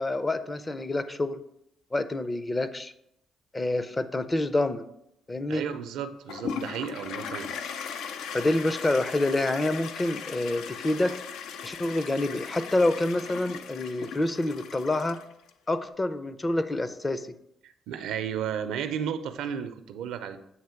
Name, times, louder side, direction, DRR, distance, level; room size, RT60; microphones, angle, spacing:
voice 1, 0.0-1.4 1.9-2.9 3.5-4.9 5.3-5.6 8.3-11.1 11.6-15.2 15.7-17.3, left 2 dB, 25° left, 12 dB, 0.5 m, -27 dB
voice 2, 5.5-7.6 17.6-20.4, right 8 dB, 90° right, 10 dB, 0.5 m, -33 dB
Toilet flush, 6.3-15.5, left 7 dB, 85° left, 0.4 m, -38 dB
8.0 x 3.1 x 5.7 m, 0.79 s
cardioid pair, 90°, 0 cm